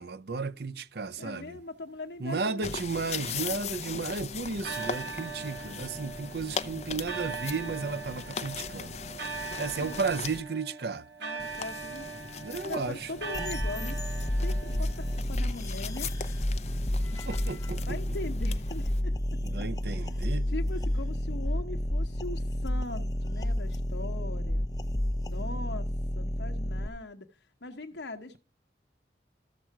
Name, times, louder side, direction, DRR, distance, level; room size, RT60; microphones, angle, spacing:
voice 1, 0.0-1.6 2.2-9.0 9.6-11.1 12.4-13.1 17.3-18.0 19.4-20.5, right 4 dB, 65° right, 0.7 m, -34 dB
voice 2, 1.2-2.7 9.8-10.0 11.2-12.1 12.6-14.0 14.4-16.1 17.9-19.1 19.9-24.7 25.3-25.9 26.2-27.3 27.6-28.4, left 2 dB, 80° left, 1.0 m, -40 dB
sound 1, 2.6-10.4 11.4-19.0, left 5 dB, 40° left, 0.7 m, -40 dB
sound 2, 2.6-4.1 4.6-15.2, right 5 dB, 85° right, 1.8 m, -41 dB
sound 3, 13.3-26.9, left 1 dB, 20° left, 1.0 m, -30 dB
14.0 x 7.5 x 4.6 m
head